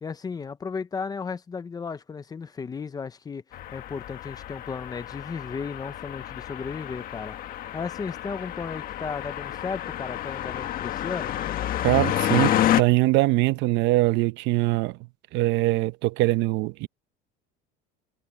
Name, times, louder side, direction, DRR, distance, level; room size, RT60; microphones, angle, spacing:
voice 1, 0.0-3.4 3.7-11.4, left 5 dB, 20° left, 0.8 m, -35 dB
sound 1, 3.5-12.8, left 12 dB, 45° left, 1.6 m, -29 dB
voice 2, 11.8-15.0 15.3-16.9, right 19 dB, 65° right, 0.9 m, -22 dB
cardioid pair, 145°, 20 cm